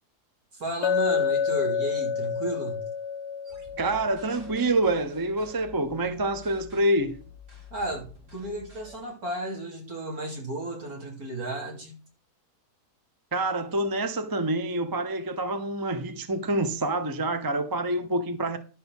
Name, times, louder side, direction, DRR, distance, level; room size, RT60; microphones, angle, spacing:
voice 1, 0.5-2.8 7.7-12.0, right 1 dB, 60° right, 3.4 m, -33 dB
Chink clink, 0.8-4.8, left 7 dB, 60° left, 0.7 m, -28 dB
sound 1, 3.4-9.0, left 5 dB, 45° right, 3.8 m, -49 dB
voice 2, 3.8-7.2 13.3-18.6, right 2 dB, 20° right, 0.6 m, -27 dB
11.5 x 4.2 x 7.1 m
omnidirectional pair, 1.7 m